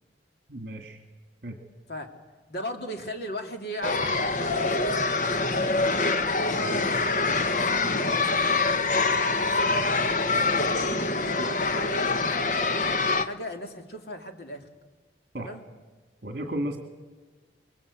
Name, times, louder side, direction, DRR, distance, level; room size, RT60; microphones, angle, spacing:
voice 1, 0.5-1.0 1.4-1.5 15.3-15.5 16.2-16.8, right 1 dB, 55° right, 5 dB, 2.3 m, -33 dB
voice 2, 2.5-6.0 6.3-7.6 8.0-11.0 11.4-14.7 15.4-15.6, left 1 dB, 60° left, 4 dB, 2.6 m, -38 dB
sound 1, 3.8-13.2, left 3 dB, 45° left, 1.0 m, -25 dB
27.0 x 22.0 x 8.4 m, 1.4 s
head